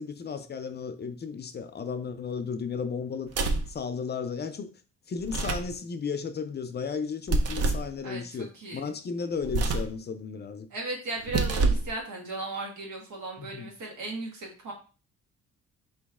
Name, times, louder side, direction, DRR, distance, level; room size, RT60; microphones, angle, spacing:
voice 1, 0.0-3.3 3.7-4.7 5.1-10.7 13.4-13.7, left 5 dB, 35° left, 0.5 m, -34 dB
sound 1, 3.3-3.7 5.2-5.7 7.3-7.9 9.4-10.0 11.2-11.9, right 3 dB, 55° right, 0.7 m, -26 dB
voice 2, 8.0-8.9 10.7-14.7, right 2 dB, 85° right, 1.8 m, -36 dB
4.5 x 3.0 x 3.5 m
cardioid pair, 90°, 30 cm